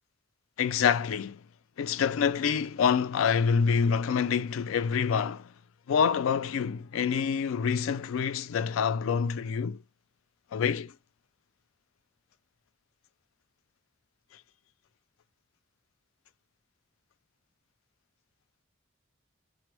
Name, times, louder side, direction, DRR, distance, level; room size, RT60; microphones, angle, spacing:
voice 1, 0.6-1.4 1.8-5.5 5.9-9.8 10.5-10.9, left 6 dB, 90° left, 0.3 m, -26 dB
2.2 x 2.0 x 2.8 m
head